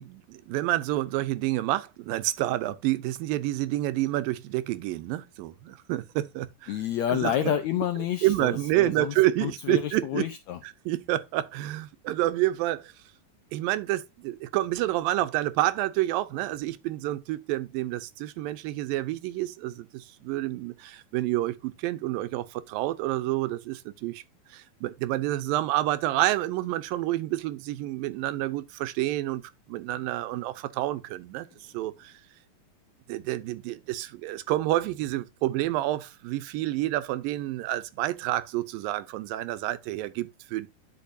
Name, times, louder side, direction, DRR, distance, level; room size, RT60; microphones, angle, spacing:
voice 1, 0.0-6.7 7.1-7.5 8.2-10.3 10.9-12.9 13.5-24.2 24.5-29.4 29.7-31.5 31.7-32.1 33.1-40.7, right 15 dB, 85° right, 2.5 m, -28 dB
voice 2, 6.7-10.6, left 11 dB, 85° left, 1.6 m, -29 dB
11.5 x 5.1 x 2.7 m
omnidirectional pair, 4.0 m